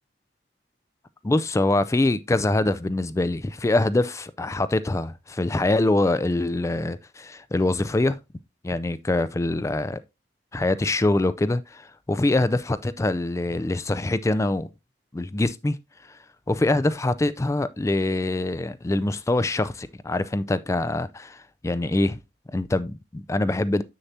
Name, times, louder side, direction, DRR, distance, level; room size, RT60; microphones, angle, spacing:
voice 1, 1.2-8.2 8.6-10.0 10.5-14.7 15.1-15.8 16.1-16.2 16.5-22.2 22.5-23.8, left 2 dB, 15° left, 0.4 m, -24 dB
7.4 x 6.6 x 2.7 m
head